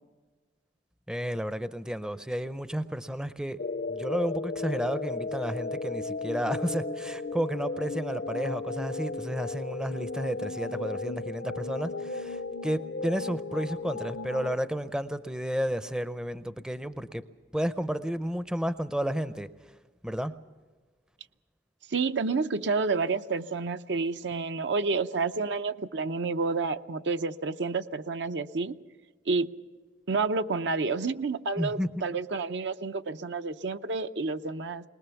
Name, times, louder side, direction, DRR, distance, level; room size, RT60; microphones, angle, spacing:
voice 1, 1.1-3.6 3.9-17.2 17.5-19.5 20.0-20.3 31.6-32.0, equal, 5° right, 12 dB, 0.5 m, -32 dB
sound 1, 3.6-14.6, left 3 dB, 55° left, 0.6 m, -35 dB
voice 2, 21.9-28.8 29.3-29.5 30.1-34.8, right 4 dB, 70° right, 9 dB, 0.7 m, -29 dB
22.0 x 20.0 x 7.1 m, 1.4 s
head